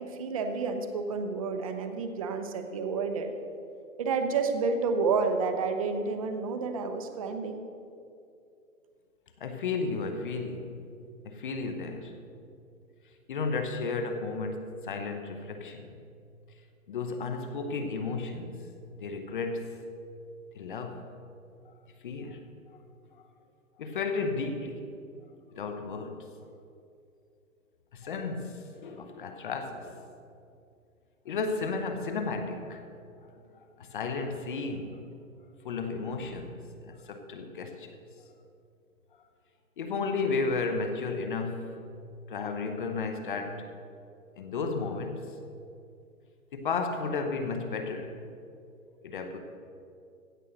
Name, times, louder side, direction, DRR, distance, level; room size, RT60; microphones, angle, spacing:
voice 1, 0.0-3.3 4.0-7.6, right 4 dB, 25° right, 6 dB, 0.8 m, -30 dB
voice 2, 9.4-10.8 11.2-12.2 13.3-15.9 16.9-18.7 19.0-19.8 20.5-21.1 21.6-21.7 22.0-22.5 23.8-24.9 25.5-26.3 27.9-30.0 31.2-32.8 33.5-35.1 35.6-38.0 39.8-41.9 42.3-43.7 44.4-45.3 46.5-48.2 49.0-49.4, left 4 dB, 35° left, 7 dB, 0.9 m, -33 dB
16.0 x 5.4 x 7.8 m, 2.5 s
hypercardioid pair, 165°, 42 cm